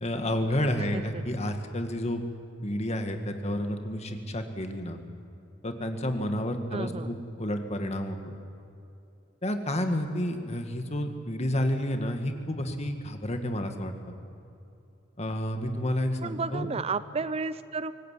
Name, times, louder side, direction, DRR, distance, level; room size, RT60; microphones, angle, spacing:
voice 1, 0.0-2.2 2.6-5.0 5.6-8.3 9.4-14.1 15.2-16.7, left 1 dB, 35° left, 6 dB, 2.0 m, -30 dB
voice 2, 0.9-1.2 6.7-7.1 16.2-17.9, right 4 dB, 30° right, 14 dB, 0.5 m, -32 dB
25.0 x 18.5 x 8.5 m, 2.7 s
head